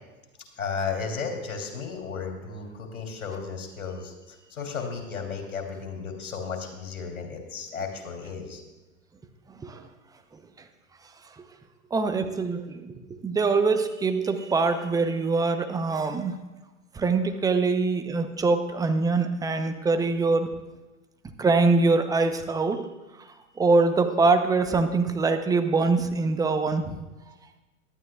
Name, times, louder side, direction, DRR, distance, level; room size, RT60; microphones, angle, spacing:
voice 1, 0.6-8.6, left 5 dB, 75° left, 2 dB, 3.0 m, -34 dB
voice 2, 11.9-16.4 16.9-20.5 21.4-22.8 23.6-27.0, right 3 dB, 10° right, 8 dB, 0.6 m, -23 dB
18.5 x 12.0 x 2.3 m, 1.1 s
hypercardioid pair, 105°, 42 cm